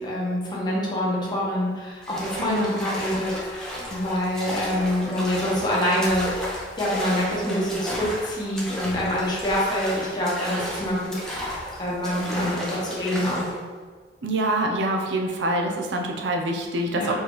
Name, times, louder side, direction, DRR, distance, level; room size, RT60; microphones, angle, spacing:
voice 1, 0.0-6.3 6.8-13.5 16.9-17.1, equal, 25° left, -5 dB, 1.0 m, -26 dB
sound 1, 2.0-13.6, equal, 5° left, 0.6 m, -34 dB
voice 2, 2.4-2.7 14.2-17.1, right 1 dB, 90° right, 2 dB, 0.5 m, -25 dB
4.3 x 3.2 x 3.0 m, 1.6 s
head